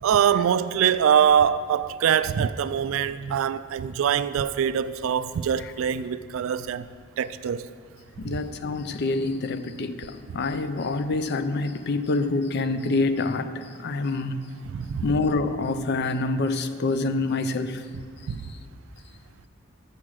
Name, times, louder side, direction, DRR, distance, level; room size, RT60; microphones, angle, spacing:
voice 1, 0.0-6.9 7.2-7.7 8.3-8.4 14.7-15.1 18.3-18.4, right 8 dB, 70° right, 0.3 m, -23 dB
voice 2, 8.2-14.4 15.0-17.8, left 3 dB, 55° left, 0.5 m, -26 dB
7.5 x 7.2 x 6.3 m
head